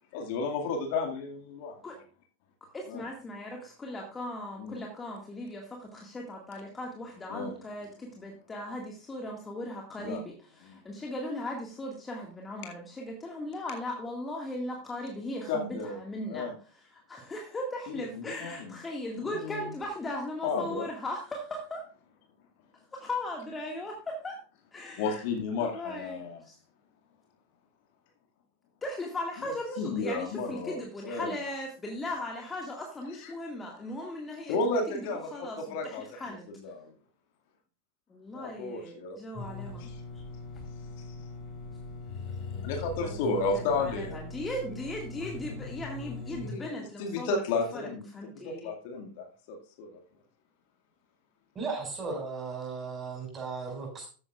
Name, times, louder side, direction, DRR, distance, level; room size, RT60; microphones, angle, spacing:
voice 1, 0.1-1.8 2.9-3.0 4.6-4.8 7.3-7.5 10.0-10.2 10.7-10.8 15.5-16.0 16.3-16.5 17.9-18.7 19.2-19.7 20.4-20.8 24.9-26.4 29.8-31.3 34.5-35.3 35.7-36.0 36.6-36.9 38.3-39.2 39.5-39.6 41.1-41.2 42.6-44.2 46.3-48.0 48.4-50.0, left 3 dB, 50° left, 2 dB, 2.1 m, -33 dB
voice 2, 2.7-21.8 22.9-24.4 24.7-25.2 25.5-26.6 28.8-36.5 38.1-39.9 43.0-47.4 47.7-47.8 48.1-48.7, left 1 dB, 15° left, 1 dB, 1.9 m, -38 dB
sound 1, 39.4-46.5, left 3 dB, 30° left, 3.7 m, -40 dB
voice 3, 51.5-54.1, right 4 dB, 20° right, 2 dB, 5.4 m, -36 dB
14.0 x 9.7 x 2.4 m, 0.39 s
figure-of-eight pair, 90°, 0 cm